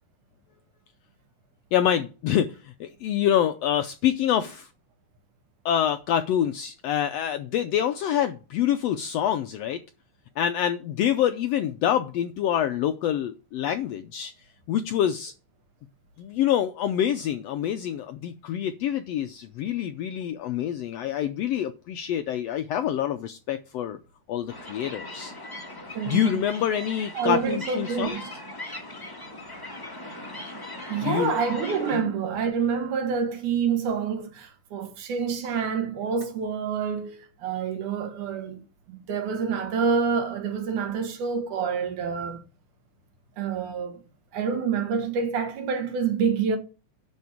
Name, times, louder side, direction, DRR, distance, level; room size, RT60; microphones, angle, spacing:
voice 1, 1.7-4.7 5.6-9.8 10.4-14.3 14.7-15.3 16.2-24.0 24.3-25.3 26.1-28.2 31.0-31.3 31.9-32.1, left 10 dB, 80° left, 1.4 m, -26 dB
sound 1, 24.5-32.0, left 1 dB, 15° left, 0.7 m, -39 dB
voice 2, 25.9-26.3 27.1-28.3 30.9-42.4 43.4-44.0 44.3-46.6, right 6 dB, 80° right, 2.9 m, -27 dB
11.0 x 4.3 x 7.1 m
omnidirectional pair, 3.5 m